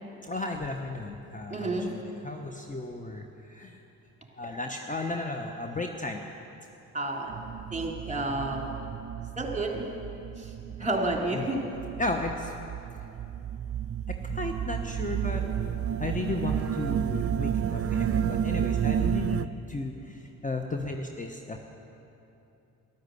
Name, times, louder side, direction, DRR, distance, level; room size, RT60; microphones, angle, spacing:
voice 1, 0.2-3.8 4.3-6.3 10.7-10.8 11.3-11.5 12.0-12.5 14.1-15.4 16.0-21.6, left 2 dB, 20° left, 3 dB, 1.1 m, -34 dB
voice 2, 1.5-1.9 6.9-7.3 7.7-8.7 9.3-9.9 10.4-10.5 10.8-11.7, right 2 dB, 20° right, 0 dB, 3.2 m, -30 dB
sound 1, 7.3-19.5, right 9 dB, 40° right, 0.5 m, -31 dB
13.0 x 12.0 x 8.1 m, 2.9 s
supercardioid pair, 55°, 36 cm